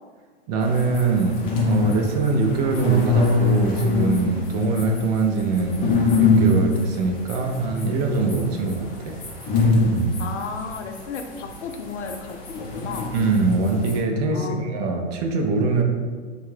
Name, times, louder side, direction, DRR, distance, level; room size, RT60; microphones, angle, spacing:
voice 1, 0.5-1.4 1.6-5.8 6.2-9.2 13.1-15.8, right 3 dB, 35° right, 3 dB, 0.4 m, -23 dB
sound 1, 0.6-14.0, left 2 dB, 25° left, 0.6 m, -23 dB
voice 2, 10.2-13.1 14.3-14.6, left 5 dB, 85° left, 5 dB, 0.6 m, -33 dB
3.6 x 2.3 x 3.1 m, 1.5 s
hypercardioid pair, 130°, 35 cm